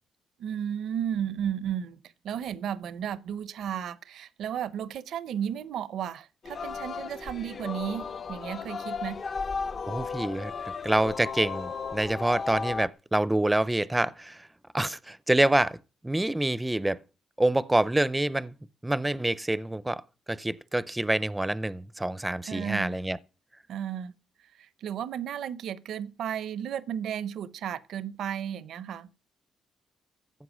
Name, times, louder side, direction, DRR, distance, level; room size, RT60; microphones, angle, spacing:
voice 1, 0.4-2.0 2.2-9.2 22.5-22.9 23.7-24.1 24.6-29.1, right 9 dB, 70° right, 0.8 m, -34 dB
Singing, 6.4-12.9, left 5 dB, 45° left, 0.7 m, -35 dB
voice 2, 9.9-10.5 10.8-14.5 14.7-15.8 16.0-17.0 17.4-18.5 18.8-20.0 20.3-23.2, right 1 dB, 10° right, 0.6 m, -26 dB
14.5 x 7.8 x 6.2 m
cardioid pair, 90°, 0 cm